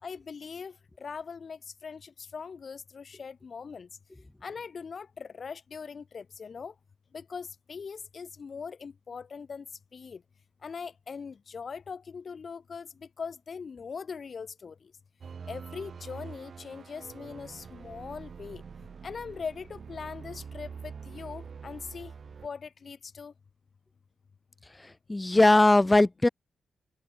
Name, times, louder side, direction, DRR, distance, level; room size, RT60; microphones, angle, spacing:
voice 1, 0.0-3.9 4.4-6.7 7.1-9.7 9.9-10.2 10.6-14.9 15.5-18.6 19.0-22.1 22.4-23.3, left 5 dB, 50° left, 6.4 m, -41 dB
sound 1, 15.2-22.5, right 6 dB, 50° right, 5.0 m, -45 dB
voice 2, 25.1-26.3, left 2 dB, 15° left, 0.9 m, -19 dB
wide cardioid pair, 115°, 0 cm